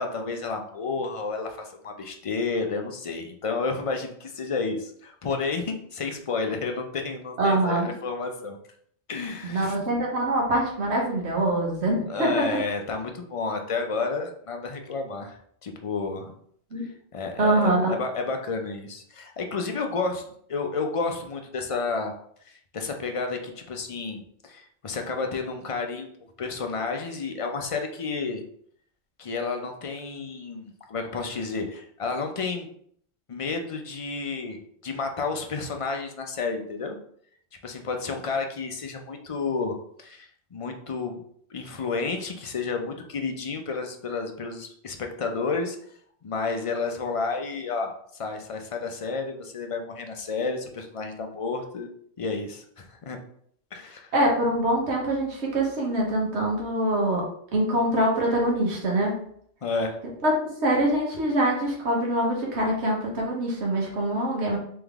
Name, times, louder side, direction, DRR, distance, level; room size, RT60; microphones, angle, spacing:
voice 1, 0.0-8.6 9.1-9.8 12.1-16.3 16.8-20.2 20.5-22.1 22.4-28.4 29.2-32.7 33.3-37.0 37.6-41.2 41.5-45.8 46.2-51.9 52.2-53.2 53.7-54.1 59.6-60.0, left 4 dB, 40° left, 4 dB, 0.5 m, -31 dB
voice 2, 7.4-7.9 9.4-12.3 16.7-16.9 17.4-17.9 54.1-57.2 57.5-59.2 60.2-64.6, right 1 dB, 75° right, -2 dB, 1.5 m, -24 dB
3.8 x 3.5 x 3.5 m, 0.63 s
omnidirectional pair, 1.1 m